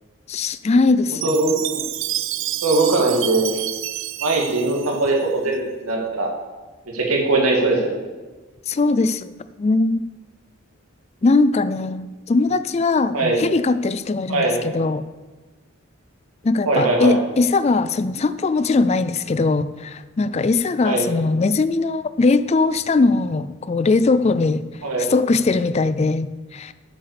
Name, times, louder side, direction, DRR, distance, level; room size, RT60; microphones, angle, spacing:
voice 1, 0.3-1.4 8.7-9.3 9.6-10.0 11.2-15.0 16.4-24.7 25.0-26.7, left 3 dB, 30° left, 14 dB, 0.3 m, -20 dB
Chime, 1.2-5.5, right 14 dB, 60° right, 0.5 m, -29 dB
voice 2, 1.2-1.9 2.6-3.5 4.2-6.3 6.9-7.9 13.1-13.4 14.3-14.6 16.7-17.2 20.8-21.0 24.8-25.1, right 2 dB, 85° right, 0 dB, 2.2 m, -20 dB
8.4 x 7.8 x 6.8 m, 1.2 s
head